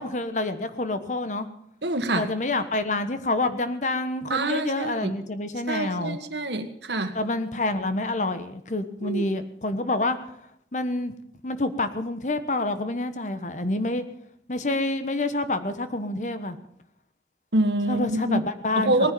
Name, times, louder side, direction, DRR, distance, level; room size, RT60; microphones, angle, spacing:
voice 1, 0.0-1.5 2.2-6.2 7.1-10.2 10.7-11.1 11.4-14.0 14.5-16.6 17.9-19.1, left 2 dB, 45° left, 10 dB, 1.2 m, -27 dB
voice 2, 1.8-2.3 4.3-5.1 5.7-7.2 9.0-9.2 17.5-18.4 18.8-19.1, right 2 dB, 80° right, 8 dB, 1.7 m, -26 dB
19.0 x 10.0 x 7.0 m, 0.73 s
head